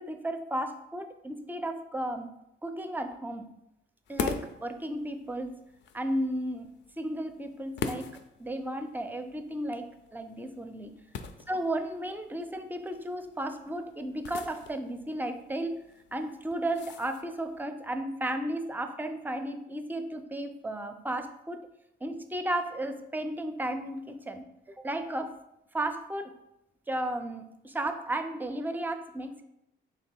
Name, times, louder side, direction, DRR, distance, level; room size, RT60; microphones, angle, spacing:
voice 1, 0.0-2.3 2.6-3.5 4.1-5.5 5.9-6.7 7.0-8.1 8.4-10.9 11.5-15.8 16.1-21.6 22.0-24.4 24.8-25.3 25.7-26.3 26.9-29.4, right 1 dB, 10° right, 8 dB, 0.4 m, -34 dB
sound 1, 4.1-17.6, left 6 dB, 65° left, 0.4 m, -43 dB
3.3 x 3.0 x 4.4 m, 0.84 s
cardioid pair, 90°, 20 cm